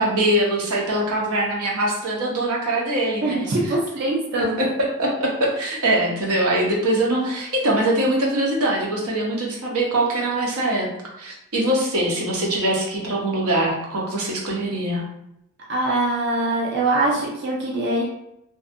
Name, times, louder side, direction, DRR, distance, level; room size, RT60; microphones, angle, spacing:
voice 1, 0.0-3.7 4.4-10.9 11.2-15.0, right 1 dB, 85° right, -2 dB, 0.7 m, -23 dB
voice 2, 3.2-4.6 15.7-18.0, right 2 dB, 50° right, -3 dB, 0.4 m, -23 dB
2.6 x 2.2 x 2.5 m, 0.81 s
head